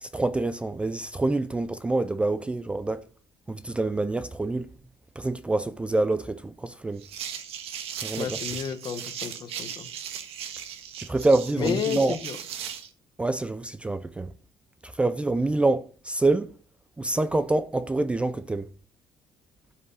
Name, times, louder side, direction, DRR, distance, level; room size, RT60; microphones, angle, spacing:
voice 1, 0.0-3.0 3.5-4.7 5.2-7.0 8.0-8.4 11.1-12.2 13.2-14.3 14.8-16.5 17.0-18.7, right 2 dB, 10° right, 0.4 m, -26 dB
sound 1, 7.0-12.9, right 9 dB, 70° right, 1.5 m, -37 dB
voice 2, 8.2-9.9 11.6-12.4, left 8 dB, 45° left, 1.4 m, -31 dB
12.5 x 7.9 x 4.1 m
cardioid pair, 160°, 10 cm